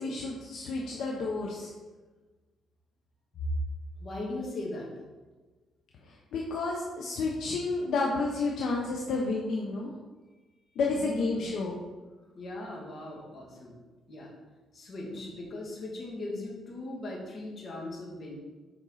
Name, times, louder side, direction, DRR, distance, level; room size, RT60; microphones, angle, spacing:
voice 1, 0.0-1.7 6.1-9.9 10.8-11.8, left 3 dB, 75° left, -1 dB, 1.0 m, -31 dB
voice 2, 4.0-4.9 10.9-11.5 12.3-13.8 14.1-14.3 14.7-18.3, left 2 dB, 50° left, -2 dB, 2.4 m, -39 dB
7.7 x 5.4 x 4.1 m, 1.3 s
cardioid pair, 90°, 0 cm